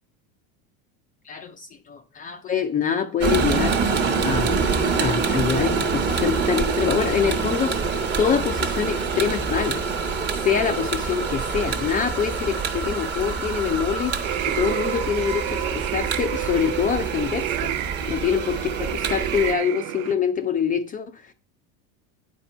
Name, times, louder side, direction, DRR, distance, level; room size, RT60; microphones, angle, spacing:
voice 1, 1.3-3.8 4.2-4.6 5.0-7.8 8.2-9.8 10.3-17.7 18.1-21.3, left 7 dB, 20° left, 0.4 m, -25 dB
sound 1, 3.2-19.5, right 5 dB, 25° right, 1.0 m, -26 dB
sound 2, 14.2-20.1, right 14 dB, 75° right, 0.6 m, -30 dB
9.0 x 4.4 x 5.4 m
supercardioid pair, 135°, 41 cm